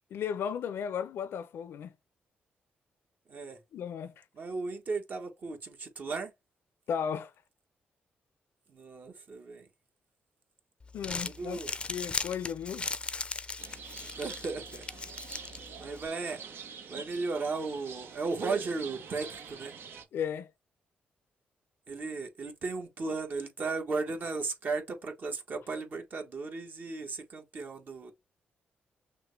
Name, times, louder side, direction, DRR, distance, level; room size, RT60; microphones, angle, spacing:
voice 1, 0.1-1.9 3.7-4.2 6.9-7.3 10.9-11.6 11.9-12.9 20.1-20.5, left 8 dB, 75° left, 0.6 m, -35 dB
voice 2, 3.3-3.6 4.3-6.3 8.7-9.7 11.2-11.7 14.2-14.8 15.8-16.4 16.9-19.7 21.9-28.1, right 4 dB, 50° right, 1.3 m, -35 dB
Crumpling crinkling, 10.8-16.1, left 3 dB, 25° left, 0.5 m, -38 dB
sound 1, 13.6-20.0, right 6 dB, 70° right, 0.9 m, -45 dB
6.1 x 2.2 x 3.3 m
cardioid pair, 95°, 4 cm